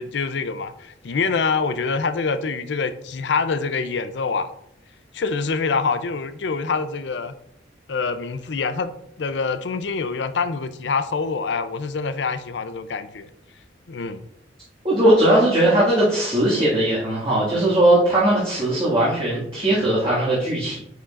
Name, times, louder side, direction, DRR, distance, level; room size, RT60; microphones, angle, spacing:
voice 1, 0.0-4.5 5.1-7.3 7.9-8.9 9.2-13.3 13.9-14.2, left 4 dB, 70° left, 11 dB, 0.5 m, -25 dB
voice 2, 14.8-20.8, right 1 dB, 30° right, -9 dB, 1.9 m, -19 dB
9.1 x 4.9 x 2.5 m, 0.76 s
head